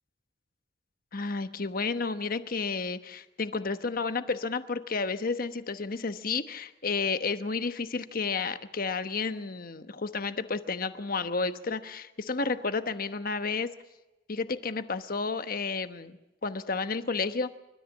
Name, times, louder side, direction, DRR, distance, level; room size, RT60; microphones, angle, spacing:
voice 1, 1.1-13.7 14.3-17.5, left 4 dB, 50° left, 11 dB, 1.1 m, -31 dB
29.0 x 13.5 x 7.3 m, 1.0 s
head